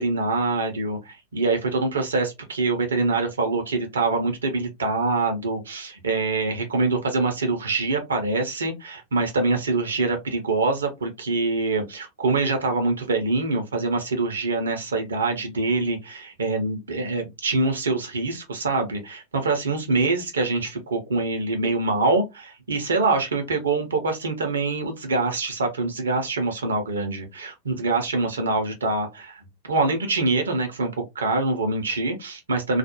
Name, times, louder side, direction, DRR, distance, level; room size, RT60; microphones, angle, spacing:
voice 1, 0.0-32.8, right 3 dB, 70° right, 0.6 m, -25 dB
2.4 x 2.1 x 2.8 m
figure-of-eight pair, 90°, 0 cm